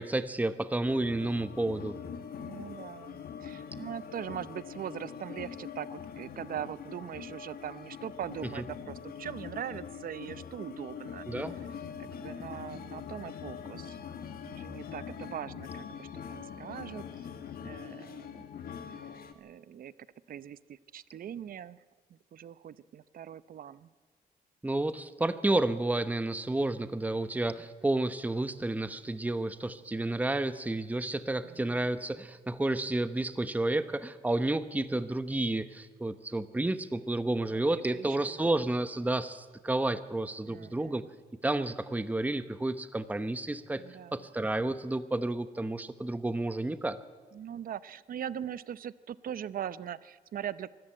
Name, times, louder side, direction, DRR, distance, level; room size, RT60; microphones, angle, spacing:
voice 1, 0.0-2.0 8.6-8.7 11.3-11.5 24.6-41.0 41.4-43.8 44.1-47.0, right 2 dB, 10° right, 12 dB, 0.9 m, -31 dB
sound 1, 0.9-19.3, left 7 dB, 75° left, 1.7 m, -43 dB
voice 2, 2.4-11.2 12.0-14.0 14.5-17.0 17.6-18.3 19.4-19.9 20.3-21.8 22.1-23.9 31.4-31.9 37.5-38.5 40.5-41.0 43.8-44.2 47.3-50.7, right 9 dB, 65° right, 17 dB, 0.7 m, -41 dB
24.0 x 14.0 x 9.0 m, 1.4 s
cardioid pair, 90°, 16 cm